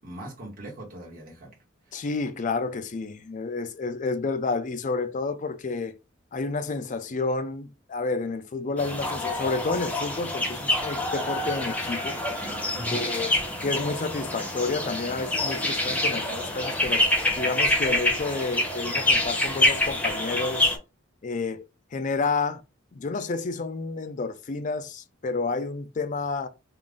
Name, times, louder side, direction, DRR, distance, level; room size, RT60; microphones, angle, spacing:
voice 1, 0.0-1.6 1.9-2.0 12.7-13.0, right 1 dB, 45° right, 1.3 m, -40 dB
voice 2, 1.9-5.9 6.3-12.2 12.9-13.3 13.6-17.0 17.4-20.8 21.2-22.6 22.9-26.5, left 3 dB, 40° left, 0.4 m, -30 dB
sound 1, 8.8-20.8, left 1 dB, 5° left, 0.7 m, -26 dB
3.8 x 2.4 x 3.5 m
head